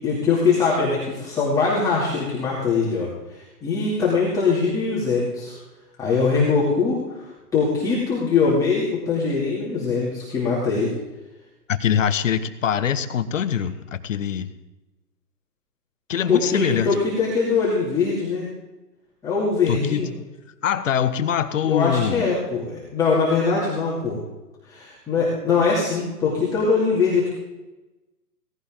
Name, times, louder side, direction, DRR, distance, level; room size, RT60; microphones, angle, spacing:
voice 1, 0.0-5.6 6.0-10.9 16.3-18.5 19.2-20.1 21.6-24.2 24.7-27.3, left 4 dB, 5° left, -7 dB, 2.6 m, -22 dB
voice 2, 11.7-14.5 16.1-16.9 19.7-20.1 20.6-22.3, left 8 dB, 50° left, 11 dB, 1.3 m, -23 dB
17.5 x 16.0 x 3.8 m, 1.1 s
hypercardioid pair, 160°, 48 cm